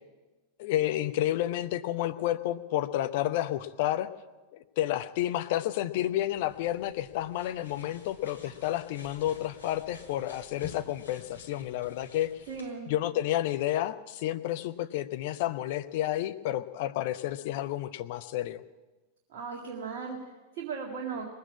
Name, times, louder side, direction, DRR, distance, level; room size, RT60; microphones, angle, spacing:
voice 1, 0.6-4.1 4.5-12.3 12.9-18.6, left 13 dB, 50° left, 10 dB, 0.8 m, -30 dB
sound 1, 6.2-12.7, left 5 dB, 70° left, 3.5 m, -50 dB
voice 2, 12.5-12.9 19.3-20.2 20.6-21.3, right 5 dB, 50° right, -1 dB, 1.9 m, -36 dB
19.5 x 8.6 x 8.5 m, 1.2 s
figure-of-eight pair, 90°, 0 cm